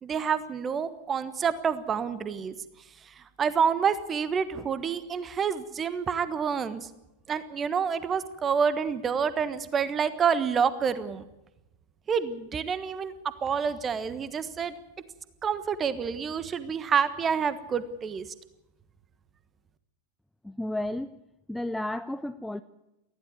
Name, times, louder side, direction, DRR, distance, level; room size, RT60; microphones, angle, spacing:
voice 1, 0.0-2.5 3.2-6.9 7.3-11.2 12.1-14.7 15.4-18.3, right 6 dB, 25° right, 15 dB, 1.3 m, -28 dB
voice 2, 20.4-21.1 21.5-22.6, left 1 dB, 5° left, 11 dB, 0.6 m, -32 dB
19.5 x 15.0 x 9.6 m, 0.96 s
figure-of-eight pair, 90°, 0 cm